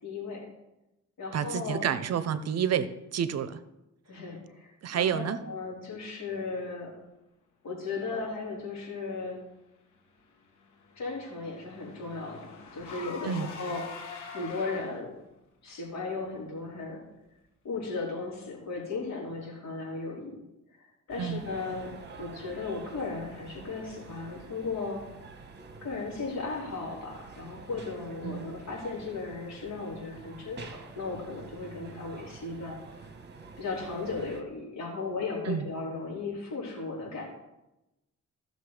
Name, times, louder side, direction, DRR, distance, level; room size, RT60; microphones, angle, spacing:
voice 1, 0.0-0.4 1.2-1.9 4.1-6.9 7.6-9.4 11.0-15.1 15.6-17.0 17.6-20.4 21.1-25.0 25.8-32.8 33.6-37.3, left 3 dB, 70° left, -4 dB, 4.3 m, -36 dB
voice 2, 1.3-3.6 4.8-5.4 13.2-13.5 21.2-21.4 28.2-28.5 35.4-35.7, right 8 dB, 60° right, 13 dB, 0.7 m, -29 dB
Car / Engine, 10.2-15.2, left 5 dB, 85° left, 1.8 m, -45 dB
sound 1, 21.1-34.4, right 4 dB, 35° right, 1.2 m, -48 dB
14.5 x 6.5 x 4.9 m, 0.94 s
wide cardioid pair, 150°, 29 cm